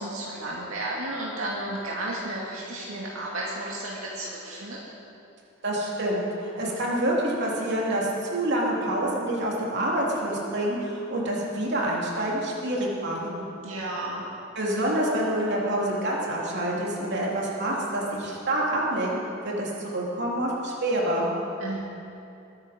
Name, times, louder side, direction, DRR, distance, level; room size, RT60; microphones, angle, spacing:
voice 1, 0.0-4.8 13.6-14.2 21.6-21.8, right 1 dB, 85° right, -4 dB, 2.1 m, -33 dB
voice 2, 5.6-13.4 14.5-19.2 19.4-21.3, right 1 dB, 55° right, -4 dB, 3.1 m, -27 dB
22.0 x 9.8 x 5.1 m, 2.7 s
head